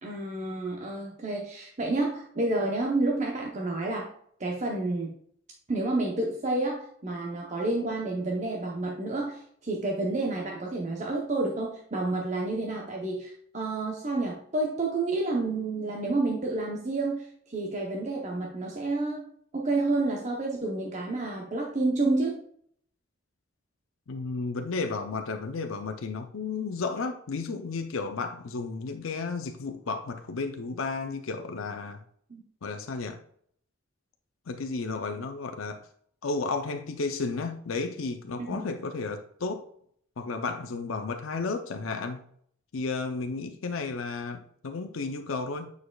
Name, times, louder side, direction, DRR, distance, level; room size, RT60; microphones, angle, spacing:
voice 1, 0.0-4.1 4.4-5.2 5.7-19.2 19.5-22.4 32.3-32.4 38.4-38.6, right 2 dB, 35° right, -1 dB, 0.8 m, -29 dB
voice 2, 24.1-32.0 32.6-33.2 34.5-35.8 36.2-39.7 40.2-42.2 42.7-45.7, left 4 dB, 90° left, 6 dB, 0.6 m, -33 dB
8.4 x 4.8 x 2.3 m, 0.64 s
head